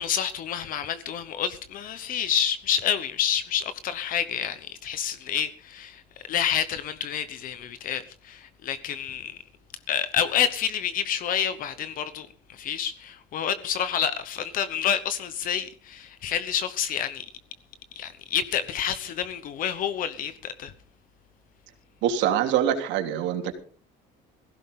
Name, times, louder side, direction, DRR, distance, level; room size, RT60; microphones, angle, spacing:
voice 1, 0.0-6.0 6.3-9.4 9.9-17.3 17.9-20.7, left 9 dB, 45° left, 1.0 m, -28 dB
voice 2, 22.0-23.5, right 10 dB, 70° right, 3.2 m, -24 dB
18.5 x 16.0 x 3.8 m
cardioid pair, 180°, 19 cm